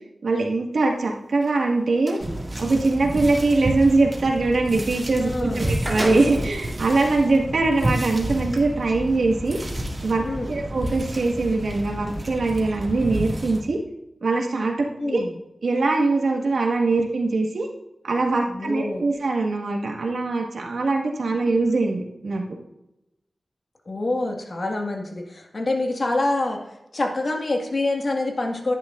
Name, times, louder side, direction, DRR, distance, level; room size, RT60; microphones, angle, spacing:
voice 1, 0.2-2.2 2.6-9.6 10.0-13.8 14.2-15.2 15.6-17.7 18.0-22.5, right 3 dB, 80° right, 0 dB, 2.0 m, -22 dB
sound 1, 1.3-2.3 5.1-5.2 5.5-6.6 7.3-7.4 8.3-8.6, right 1 dB, 10° right, 3.4 m, -32 dB
sound 2, 2.2-13.6, right 1 dB, 30° right, 2.3 m, -30 dB
voice 2, 5.2-5.8 10.2-10.5 15.0-15.3 18.5-19.0 21.3-21.4 23.9-28.7, left 2 dB, 50° left, 2 dB, 1.9 m, -26 dB
11.5 x 10.5 x 2.6 m, 0.91 s
wide cardioid pair, 100°, 0 cm